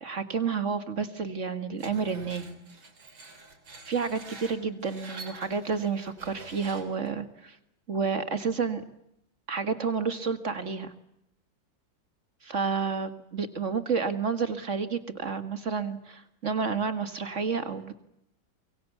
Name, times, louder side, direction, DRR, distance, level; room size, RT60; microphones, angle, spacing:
voice 1, 0.0-2.6 3.9-7.6 7.9-8.8 9.5-10.9 12.4-18.0, right 5 dB, 40° right, 10 dB, 2.0 m, -30 dB
Screech, 1.8-7.1, right 3 dB, 85° right, 4.4 m, -47 dB
25.5 x 23.5 x 8.3 m, 0.80 s
omnidirectional pair, 2.1 m